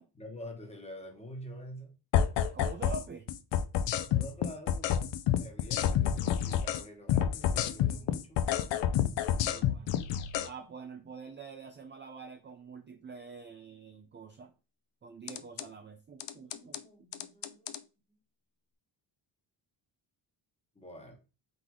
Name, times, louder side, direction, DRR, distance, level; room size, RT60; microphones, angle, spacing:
voice 1, 0.1-1.9 4.0-8.4 16.3-17.8 18.1-18.2 20.7-21.2, equal, 15° left, 3 dB, 1.0 m, -47 dB
sound 1, 2.1-3.0 3.3-6.8 7.1-10.5 15.3-15.6 16.2-16.8 17.1-17.8, left 10 dB, 70° left, 0.5 m, -29 dB
voice 2, 2.5-3.3 9.4-10.0 10.4-14.5 15.0-16.8, right 5 dB, 25° right, 5 dB, 0.4 m, -46 dB
3.8 x 3.7 x 3.0 m, 0.32 s
cardioid pair, 125°, 45 cm